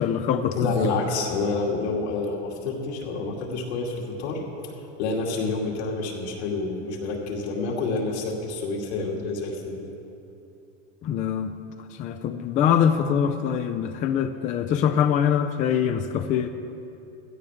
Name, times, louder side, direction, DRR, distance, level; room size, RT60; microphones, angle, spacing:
voice 1, 0.0-0.7 11.0-11.5 12.0-16.5, left 8 dB, 25° left, 7 dB, 0.4 m, -23 dB
voice 2, 0.6-4.7 5.0-9.8, left 3 dB, 75° left, -1 dB, 2.6 m, -28 dB
16.0 x 13.0 x 3.6 m, 2.7 s
supercardioid pair, 140°, 33 cm